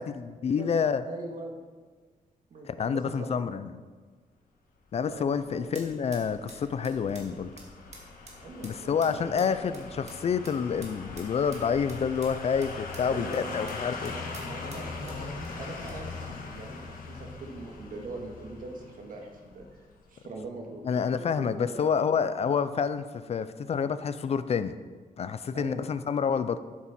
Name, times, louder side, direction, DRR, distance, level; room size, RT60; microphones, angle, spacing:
voice 1, 0.0-1.0 2.7-3.7 4.9-7.5 8.6-14.1 20.8-24.7 25.2-26.6, left 6 dB, 45° left, 12 dB, 0.4 m, -28 dB
voice 2, 1.0-1.6 2.5-3.6 5.0-5.8 8.4-9.6 13.1-19.8 20.1-21.9 25.5-25.9, right 2 dB, 70° right, 1 dB, 1.8 m, -42 dB
sound 1, 5.0-16.6, right 2 dB, 50° right, 2.1 m, -53 dB
sound 2, 5.1-20.1 20.4-20.5, left 4 dB, 75° left, 1.5 m, -41 dB
12.0 x 7.5 x 4.2 m, 1.5 s
wide cardioid pair, 175°, 15 cm